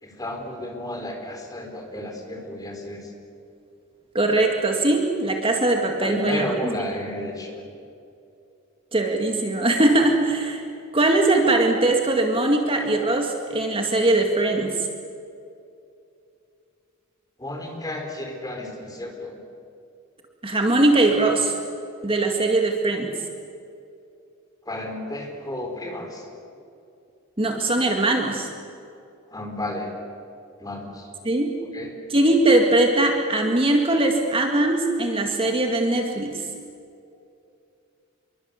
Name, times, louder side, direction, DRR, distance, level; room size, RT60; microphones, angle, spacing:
voice 1, 0.0-3.1 6.0-7.7 17.4-19.4 24.7-26.3 29.3-29.9 30.6-31.1 31.7-31.9, left 1 dB, 20° left, 3 dB, 4.3 m, -32 dB
voice 2, 4.1-6.5 8.9-10.6 10.9-14.7 20.4-21.5 22.0-23.1 27.4-28.5 31.2-31.5 32.1-36.4, right 2 dB, 25° right, 2 dB, 2.1 m, -21 dB
27.0 x 23.0 x 8.3 m, 2.6 s
head